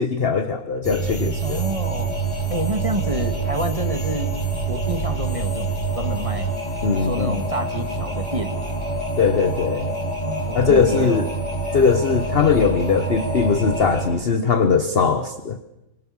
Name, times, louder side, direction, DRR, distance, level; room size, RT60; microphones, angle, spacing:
voice 1, 0.0-1.6 6.8-7.4 9.2-9.9 10.5-11.3 11.7-15.6, left 5 dB, 40° left, 9 dB, 1.0 m, -20 dB
sound 1, 0.8-14.1, right 3 dB, 15° left, 6.2 m, -26 dB
voice 2, 1.4-4.3 4.7-6.5 6.9-8.6 10.2-11.3, right 1 dB, 15° right, 7 dB, 1.9 m, -28 dB
27.0 x 23.0 x 7.2 m, 0.93 s
omnidirectional pair, 2.1 m